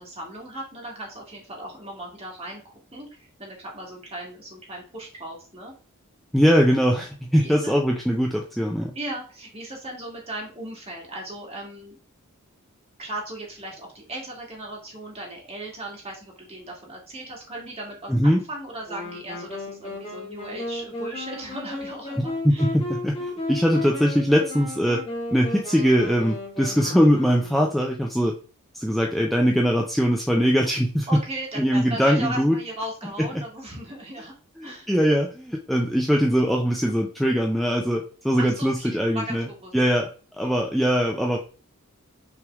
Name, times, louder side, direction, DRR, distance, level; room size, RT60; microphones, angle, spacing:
voice 1, 0.0-5.7 7.4-7.7 8.9-11.9 13.0-22.7 31.1-34.3 34.6-34.9 38.4-39.7 40.4-40.6, right 1 dB, 30° right, -2 dB, 1.5 m, -37 dB
voice 2, 6.3-8.9 18.1-18.4 22.2-25.0 25.3-28.3 28.7-31.1 31.6-32.6 34.6-39.5 39.7-40.1 40.4-41.4, equal, ahead, -1 dB, 0.4 m, -21 dB
Wind instrument woodwind instrument, 18.9-27.9, left 2 dB, 25° left, 1.7 m, -34 dB
5.9 x 3.2 x 2.4 m, 0.37 s
head